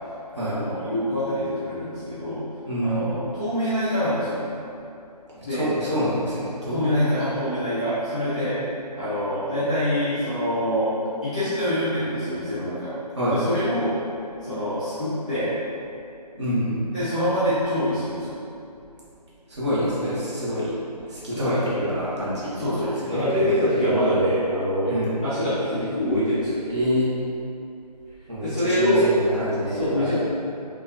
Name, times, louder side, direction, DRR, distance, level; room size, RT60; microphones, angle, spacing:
voice 1, 0.3-2.4 2.8-4.5 5.4-5.7 6.7-8.6 8.9-11.0 11.2-13.0 13.3-13.9 14.4-15.5 16.9-18.4 21.3-21.6 22.5-24.9 25.2-26.7 28.4-29.1 29.7-30.2, equal, 10° left, -17 dB, 0.5 m, -25 dB
voice 2, 2.6-3.2 5.5-7.0 13.1-13.4 16.4-16.9 19.5-23.5 24.9-25.3 26.7-27.1 28.3-30.2, equal, 40° right, -9 dB, 1.3 m, -27 dB
5.3 x 2.4 x 2.8 m, 2.7 s
figure-of-eight pair, 160°, 21 cm